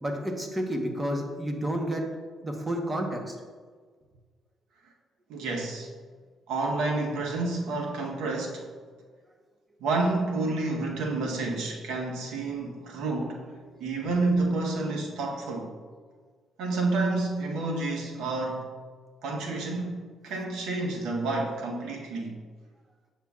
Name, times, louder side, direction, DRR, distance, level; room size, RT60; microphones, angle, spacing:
voice 1, 0.0-2.1 2.4-3.4, equal, 20° right, 2 dB, 1.0 m, -30 dB
voice 2, 5.3-5.9 6.5-8.7 9.8-15.7 16.6-18.7 19.2-22.4, right 3 dB, 85° right, 0 dB, 1.0 m, -29 dB
8.1 x 5.7 x 2.4 m, 1.5 s
cardioid pair, 90°, 0 cm